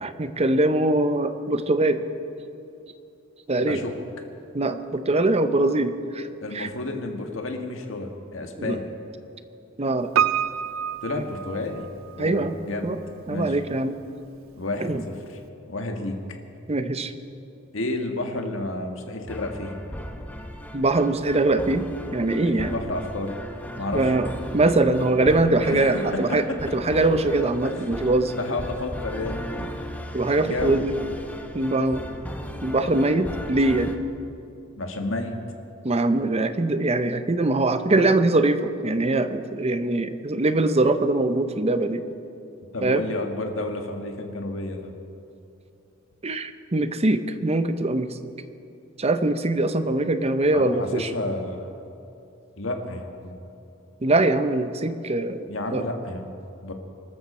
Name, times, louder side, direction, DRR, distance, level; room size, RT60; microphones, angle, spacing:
voice 1, 0.0-2.0 3.5-3.8 4.5-6.3 6.5-6.7 8.6-8.8 9.8-10.1 12.2-12.5 12.8-13.0 13.3-14.0 14.8-15.0 16.7-17.1 20.7-22.7 23.9-26.4 26.7-28.3 30.1-30.9 31.5-32.1 32.6-33.9 35.8-42.0 42.8-43.0 46.2-48.1 49.0-51.1 54.0-55.5 55.7-55.8, right 2 dB, 30° right, 10 dB, 0.8 m, -22 dB
voice 2, 6.4-8.9 11.0-11.9 12.1-12.9 13.3-13.6 14.5-15.4 15.7-16.2 17.7-19.8 22.6-23.4 23.8-24.1 25.0-25.1 25.6-26.4 27.6-27.7 28.4-29.8 30.4-31.0 34.8-35.4 42.7-44.9 50.5-51.7 52.6-53.4 55.5-56.3 56.6-56.7, left 2 dB, 75° left, 3 dB, 1.7 m, -31 dB
Piano, 10.2-12.2 12.5-12.6, right 8 dB, 90° right, 0.5 m, -26 dB
sound 1, 19.3-34.0, equal, 10° left, 0.9 m, -37 dB
24.0 x 13.5 x 4.4 m, 2.7 s
head